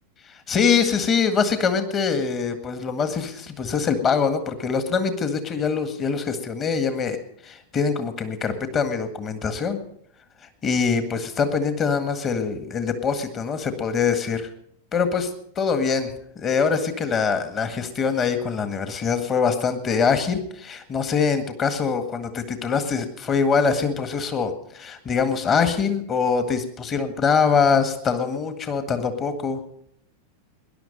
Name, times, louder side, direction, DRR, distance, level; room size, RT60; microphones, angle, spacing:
voice 1, 0.3-7.2 7.4-9.8 10.6-14.5 14.9-15.3 15.6-29.6, left 5 dB, 25° left, 9 dB, 1.7 m, -23 dB
20.0 x 11.0 x 5.3 m, 0.66 s
figure-of-eight pair, 90°, 0 cm